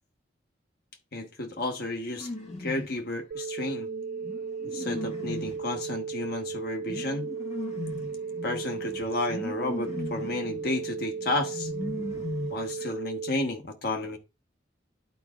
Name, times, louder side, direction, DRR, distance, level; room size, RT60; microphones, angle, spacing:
voice 1, 1.1-2.3 2.6-3.9 4.6-7.3 8.4-11.7 12.5-14.2, left 2 dB, 55° left, 1.2 m, -32 dB
sound 1, 2.1-3.0 3.8-13.0, left 2 dB, 35° left, 1.3 m, -38 dB
sound 2, 3.3-13.3, right 5 dB, 85° right, 1.1 m, -36 dB
12.0 x 4.9 x 2.3 m
head